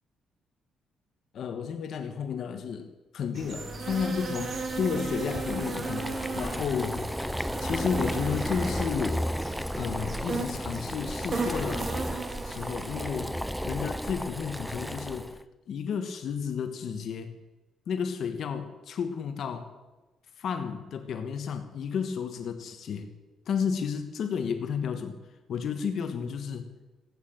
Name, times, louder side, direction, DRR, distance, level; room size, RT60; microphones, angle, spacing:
voice 1, 1.3-7.1 7.6-9.2 9.8-11.9 12.4-13.4 13.6-15.4 15.7-17.4 17.9-19.7 20.4-23.1 23.5-25.2 25.5-26.7, left 6 dB, 50° left, 7 dB, 1.2 m, -32 dB
sound 1, 3.3-13.3, right 4 dB, 35° right, 1.8 m, -36 dB
Boiling, 4.1-15.4, equal, ahead, 0.4 m, -34 dB
15.5 x 8.9 x 7.7 m, 1.2 s
cardioid pair, 160°, 0 cm